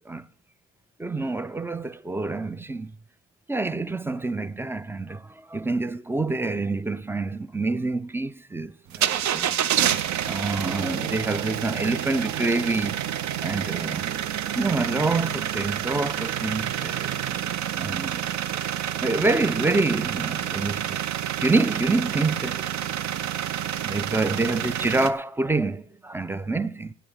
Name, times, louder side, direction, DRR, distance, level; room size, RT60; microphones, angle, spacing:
voice 1, 1.0-2.9 3.5-9.6 10.2-13.0 13.4-14.1 14.5-17.1 17.8-18.3 19.0-21.0 21.4-22.7 23.8-26.9, right 3 dB, 10° right, 0.3 m, -27 dB
sound 1, 8.9-25.1, right 10 dB, 65° right, 0.6 m, -28 dB
9.1 x 7.6 x 8.7 m
cardioid pair, 90°, 30 cm